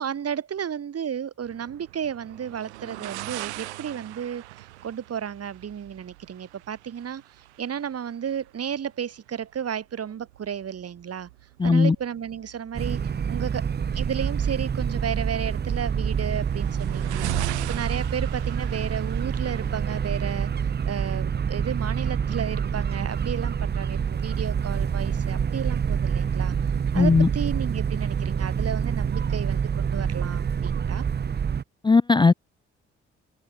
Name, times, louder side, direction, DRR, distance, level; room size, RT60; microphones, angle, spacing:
voice 1, 0.0-7.2 7.6-11.3 11.6-13.0 13.3-13.6 13.9-26.5 26.9-31.0, right 8 dB, 45° right, 1.5 m, -33 dB
sound 1, 1.4-21.1, right 18 dB, 90° right, 1.9 m, -41 dB
voice 2, 11.6-12.0 26.9-27.3 31.8-32.3, left 4 dB, 15° left, 0.4 m, -17 dB
sound 2, 12.7-31.6, right 7 dB, 30° right, 0.7 m, -27 dB
hypercardioid pair, 40°, 33 cm